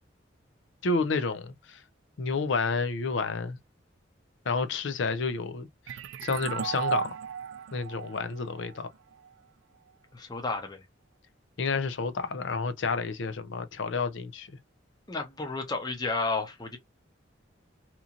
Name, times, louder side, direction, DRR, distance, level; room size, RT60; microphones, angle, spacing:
voice 1, 0.8-1.8 2.2-3.6 4.5-5.7 6.2-7.1 7.7-8.9 11.6-14.6, left 4 dB, 75° left, 0.5 m, -30 dB
sound 1, 5.9-9.3, right 8 dB, 75° right, 0.3 m, -35 dB
voice 2, 10.1-10.8 15.1-16.8, left 3 dB, 20° left, 0.7 m, -32 dB
2.9 x 2.5 x 2.4 m
head